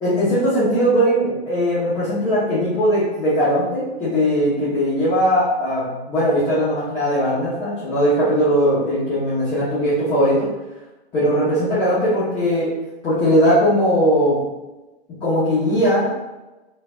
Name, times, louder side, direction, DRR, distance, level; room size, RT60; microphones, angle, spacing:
voice 1, 0.0-10.5 11.1-12.7 13.0-14.4 15.2-16.2, equal, 15° left, -12 dB, 1.4 m, -19 dB
4.4 x 4.4 x 2.6 m, 1.1 s
hypercardioid pair, 155°, 33 cm